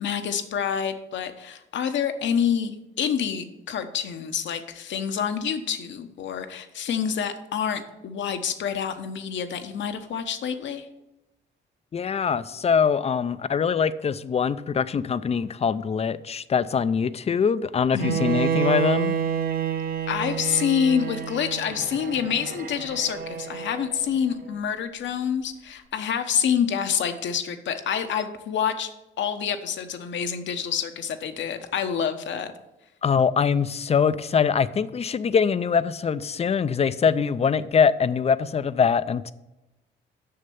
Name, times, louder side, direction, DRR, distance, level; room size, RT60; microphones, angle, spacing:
voice 1, 0.0-10.9 17.9-18.2 20.1-28.9 29.2-32.5, left 8 dB, 70° left, 8 dB, 1.0 m, -27 dB
voice 2, 11.9-19.1 33.0-39.3, left 6 dB, 30° left, 15 dB, 0.5 m, -23 dB
Bowed string instrument, 18.0-24.0, right 7 dB, 50° right, 0.8 m, -29 dB
6.7 x 6.5 x 7.0 m, 0.95 s
cardioid pair, 90°, 20 cm